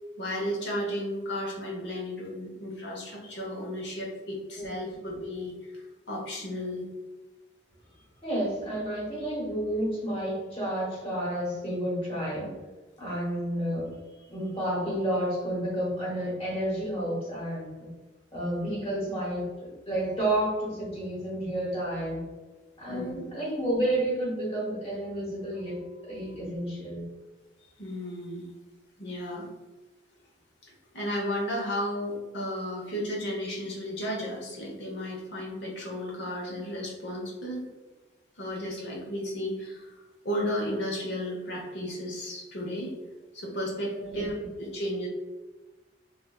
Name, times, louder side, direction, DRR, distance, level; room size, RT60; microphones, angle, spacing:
voice 1, 0.2-5.7 6.1-6.9 22.9-23.2 27.8-28.5 29.0-29.5 30.6-37.6 38.4-40.0 40.2-42.9 43.3-45.1, equal, 75° left, -3 dB, 0.9 m, -34 dB
voice 2, 4.6-5.0 8.2-12.5 13.0-13.9 14.3-17.9 18.3-22.2 22.8-27.0 44.0-44.2, right 1 dB, 35° left, -5 dB, 1.2 m, -31 dB
3.4 x 2.5 x 2.3 m, 1.2 s
head